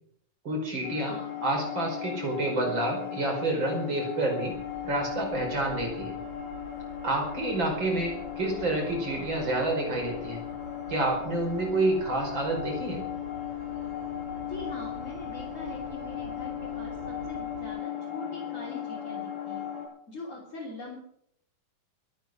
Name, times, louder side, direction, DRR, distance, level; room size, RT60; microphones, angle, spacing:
voice 1, 0.4-1.1 1.4-4.5 4.8-6.1 7.0-10.4 10.9-13.0, right 2 dB, 35° right, 1 dB, 5.4 m, -29 dB
sound 1, 0.8-19.9, left 10 dB, 85° left, 8.2 m, -37 dB
voice 2, 1.0-1.5 14.5-19.7 20.1-21.0, left 2 dB, 25° left, -4 dB, 3.4 m, -42 dB
sound 2, 4.4-17.7, right 4 dB, 70° right, 6.9 m, -48 dB
23.0 x 9.2 x 6.2 m, 0.71 s
omnidirectional pair, 3.7 m